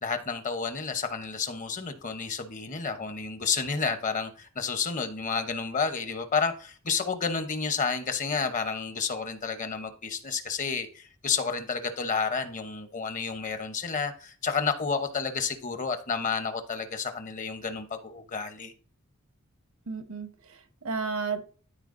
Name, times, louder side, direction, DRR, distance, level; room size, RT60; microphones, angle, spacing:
voice 1, 0.0-18.7, left 5 dB, 35° left, 0.8 m, -30 dB
voice 2, 19.9-21.4, right 4 dB, 80° right, 1.0 m, -33 dB
13.0 x 4.4 x 2.6 m
head